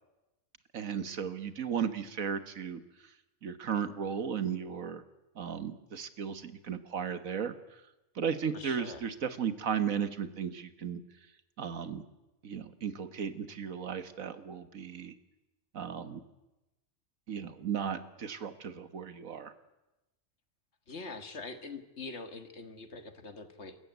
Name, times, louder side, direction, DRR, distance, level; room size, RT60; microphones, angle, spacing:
voice 1, 0.7-2.8 3.4-5.0 5.3-7.5 8.1-11.0 11.6-12.0 12.4-15.1 15.7-16.2 17.3-19.5, right 7 dB, 75° right, 11 dB, 1.7 m, -35 dB
voice 2, 8.5-9.0 20.9-23.8, left 3 dB, 55° left, 8 dB, 1.8 m, -44 dB
27.5 x 14.5 x 9.3 m, 0.99 s
omnidirectional pair, 1.4 m